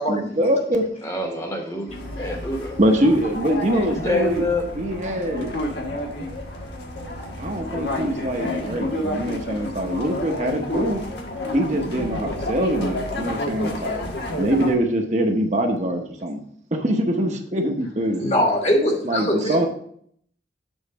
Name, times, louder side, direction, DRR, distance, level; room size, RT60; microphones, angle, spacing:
voice 1, 0.1-0.9 2.8-4.5 4.7-5.5 7.4-11.0 11.5-14.1 14.4-16.4 16.7-18.2 19.0-19.7, right 1 dB, 40° right, 3 dB, 0.8 m, -23 dB
voice 2, 1.0-2.7 4.0-4.6, left 2 dB, 15° left, 2 dB, 1.1 m, -26 dB
sound 1, 1.9-14.8, left 1 dB, 80° left, 1.4 m, -30 dB
voice 3, 18.2-19.7, left 1 dB, 35° left, 1 dB, 1.3 m, -21 dB
7.2 x 3.9 x 5.6 m, 0.65 s
head